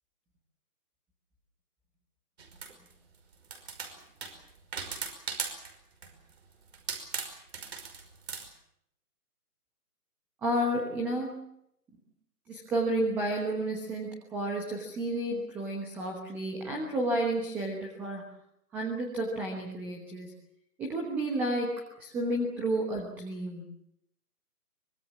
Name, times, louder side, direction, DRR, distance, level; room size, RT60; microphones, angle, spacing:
sound 1, 2.4-2.9 3.4-5.8 6.0-6.3 6.7-8.5, right 6 dB, 40° right, 5.4 m, -37 dB
voice 1, 10.4-11.4 12.5-18.3 18.7-20.3 20.8-23.7, right 1 dB, 5° right, 0 dB, 1.1 m, -31 dB
24.5 x 23.0 x 7.2 m, 0.74 s
hypercardioid pair, 160°, 46 cm